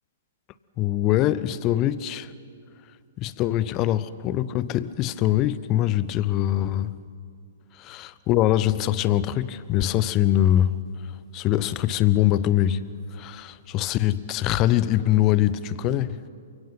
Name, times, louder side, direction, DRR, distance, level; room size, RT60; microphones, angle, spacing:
voice 1, 0.8-2.3 3.2-7.0 7.7-10.8 11.3-12.8 13.1-16.2, left 13 dB, 30° left, 0.8 m, -23 dB
29.0 x 25.0 x 5.9 m
figure-of-eight pair, 115°, 0 cm